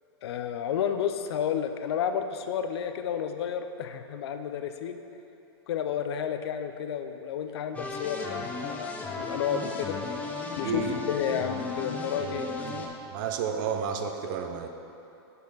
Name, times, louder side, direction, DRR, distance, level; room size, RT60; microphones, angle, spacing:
voice 1, 0.2-5.0 5.7-8.9 9.2-10.0 10.6-12.5, left 8 dB, 70° left, 7 dB, 0.5 m, -31 dB
sound 1, 7.7-12.9, left 3 dB, 10° left, 0.5 m, -35 dB
voice 2, 10.6-11.0 12.6-12.9 13.1-14.7, right 6 dB, 50° right, 6 dB, 0.5 m, -31 dB
6.4 x 5.2 x 4.0 m, 2.9 s
hypercardioid pair, 140°, 14 cm